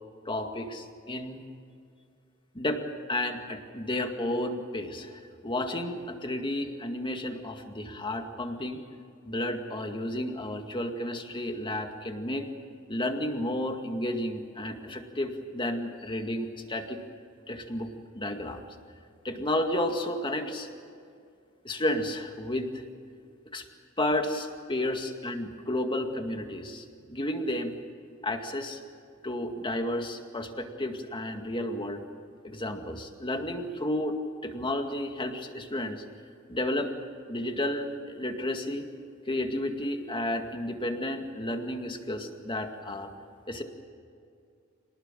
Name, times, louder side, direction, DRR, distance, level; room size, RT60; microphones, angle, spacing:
voice 1, 0.3-1.4 2.5-8.8 9.3-12.5 12.9-17.0 17.5-18.6 19.2-20.7 21.6-22.7 23.5-23.7 24.0-27.7 28.2-28.8 29.2-32.0 32.4-34.2 34.4-36.0 36.5-36.9 37.3-38.9 39.3-43.1 43.5-43.6, left 1 dB, 25° left, 4 dB, 2.1 m, -32 dB
26.5 x 19.0 x 7.5 m, 2.4 s
head